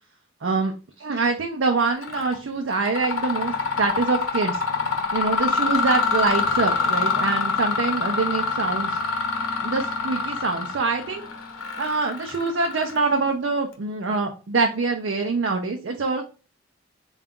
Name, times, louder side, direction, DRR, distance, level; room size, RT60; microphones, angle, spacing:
voice 1, 0.4-4.6 5.1-9.0 9.6-11.3 11.8-16.2, right 4 dB, 60° right, 3 dB, 0.5 m, -25 dB
Mechanisms, 2.0-2.4 2.7-13.3, left 4 dB, 80° left, 0.8 m, -26 dB
3.9 x 2.3 x 3.6 m, 0.34 s
head